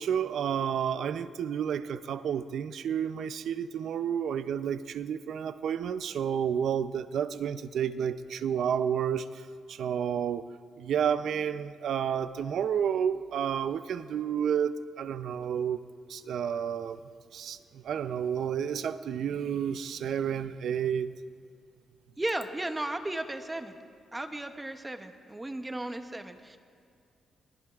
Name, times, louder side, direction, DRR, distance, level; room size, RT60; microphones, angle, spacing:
voice 1, 0.0-10.4 10.8-15.8 16.1-17.0 17.3-21.1, right 8 dB, 60° right, 12 dB, 0.5 m, -30 dB
voice 2, 22.2-23.8 24.1-26.6, right 1 dB, 10° right, 7 dB, 0.7 m, -35 dB
25.0 x 19.5 x 2.4 m, 2.3 s
wide cardioid pair, 180°, 0 cm